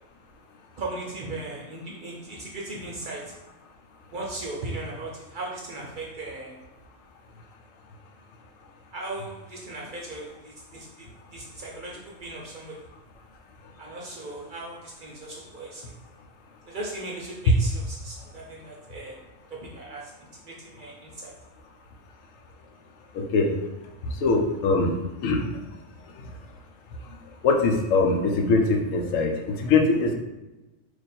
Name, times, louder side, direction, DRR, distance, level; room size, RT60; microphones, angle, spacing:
voice 1, 0.8-3.3 4.1-6.5 8.9-11.1 11.3-12.8 13.8-15.8 16.7-19.2 19.5-20.1 20.5-21.3, right 2 dB, 50° right, -2 dB, 0.6 m, -37 dB
voice 2, 23.1-23.5 24.0-24.9 25.2-25.5 26.2-26.3 27.4-30.1, left 3 dB, 85° left, 3 dB, 1.0 m, -22 dB
3.1 x 2.5 x 4.1 m, 1.0 s
omnidirectional pair, 1.3 m